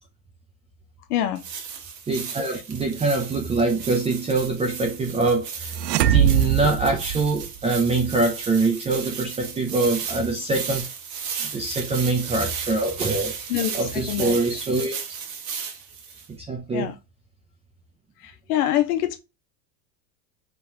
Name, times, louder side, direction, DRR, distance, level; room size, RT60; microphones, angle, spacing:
voice 1, 1.1-1.4 2.5-2.6 13.5-14.4 16.7-17.0 18.2-19.2, left 12 dB, 70° left, 0.8 m, -25 dB
sound 1, 1.4-16.3, right 6 dB, 35° right, 1.4 m, -35 dB
voice 2, 2.1-10.9 11.4-15.0 16.4-16.9, right 3 dB, 15° right, 0.6 m, -24 dB
sound 2, 5.8-7.8, right 9 dB, 85° right, 0.6 m, -21 dB
5.6 x 3.1 x 2.7 m
supercardioid pair, 130°, 48 cm